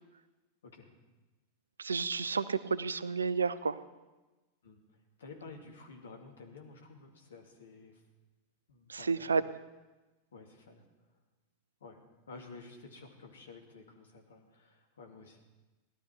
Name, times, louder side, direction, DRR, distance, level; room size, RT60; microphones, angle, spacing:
voice 1, 0.6-0.9 4.6-4.8 5.2-8.0 8.7-9.4 10.3-10.8 11.8-12.0 12.3-15.4, left 3 dB, 65° left, 1 dB, 2.4 m, -51 dB
voice 2, 1.8-3.8 8.9-9.4, right 5 dB, 75° right, 15 dB, 0.6 m, -31 dB
17.5 x 12.0 x 4.5 m, 1.2 s
figure-of-eight pair, 90°, 0 cm